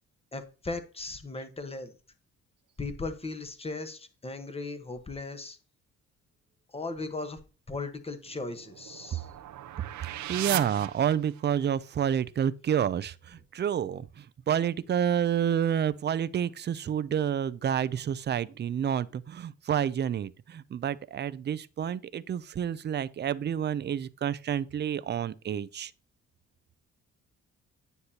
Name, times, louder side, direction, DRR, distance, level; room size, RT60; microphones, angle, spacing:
voice 1, 0.3-1.9 2.8-5.6 6.7-7.4 7.7-9.3, left 3 dB, 20° left, 1.2 m, -37 dB
sound 1, 8.2-11.7, right 12 dB, 70° right, 0.7 m, -38 dB
voice 2, 10.0-25.9, right 9 dB, 35° right, 0.4 m, -29 dB
9.6 x 6.6 x 2.8 m
cardioid pair, 90°, 30 cm